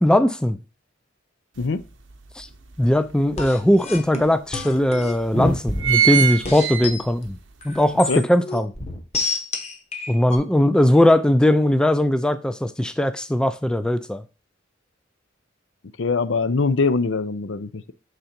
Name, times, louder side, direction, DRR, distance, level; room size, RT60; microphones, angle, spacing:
voice 1, 0.0-0.6 2.4-2.5 2.8-7.4 7.6-8.7 10.1-14.2, left 1 dB, 5° left, 0.3 m, -19 dB
sound 1, 1.6-1.7 2.1-3.3 4.0-4.1 4.3-4.4 5.1-5.3 5.5-7.4 7.8-7.9, right 9 dB, 70° right, 0.8 m, -22 dB
sound 2, 3.4-6.1 6.4-7.0 7.6-10.4, left 2 dB, 35° left, 1.1 m, -28 dB
voice 2, 16.0-17.9, left 4 dB, 75° left, 0.6 m, -22 dB
6.7 x 3.8 x 4.4 m
head